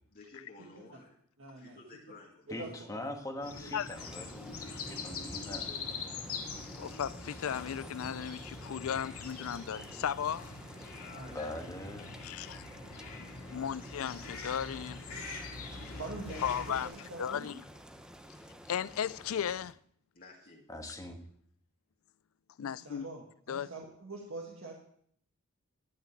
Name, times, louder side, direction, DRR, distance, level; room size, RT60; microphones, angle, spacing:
voice 1, 0.1-1.2 1.6-2.8 11.0-11.6 20.1-20.7, left 3 dB, 45° left, 1.9 m, -53 dB
voice 2, 1.4-1.8 2.5-2.9 3.4-3.8 11.1-11.4 15.9-17.6 22.6-24.7, right 2 dB, 65° right, 1.8 m, -45 dB
voice 3, 2.5-6.0 11.3-12.1 20.7-21.2, left 1 dB, 15° left, 1.7 m, -42 dB
sound 1, 3.4-16.9, left 4 dB, 85° left, 2.2 m, -44 dB
sound 2, 3.9-19.7, equal, 5° right, 0.8 m, -51 dB
voice 4, 6.8-10.5 12.2-12.6 13.2-15.0 16.4-17.6 18.7-19.8 22.6-23.1 23.5-23.7, left 8 dB, 65° left, 0.4 m, -36 dB
11.5 x 6.0 x 9.1 m
head